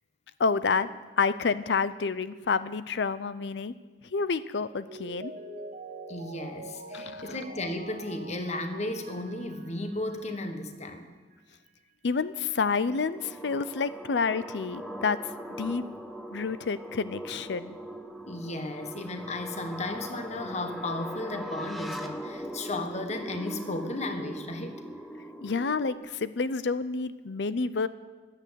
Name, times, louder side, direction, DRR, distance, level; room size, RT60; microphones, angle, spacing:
voice 1, 0.4-0.9 1.2-3.7 4.1-5.3 6.9-7.4 12.0-15.2 15.6-15.8 16.3-17.8 25.4-27.9, left 4 dB, 70° left, 15 dB, 0.6 m, -29 dB
Mallet percussion, 4.9-10.4 10.7-10.8, right 2 dB, 50° right, 1.8 m, -44 dB
voice 2, 6.1-11.1 15.7-15.8 18.3-24.8, left 2 dB, 40° left, 7 dB, 1.5 m, -34 dB
sound 1, 12.9-26.0, equal, ahead, 1.1 m, -40 dB
15.5 x 11.0 x 8.2 m, 1.4 s
head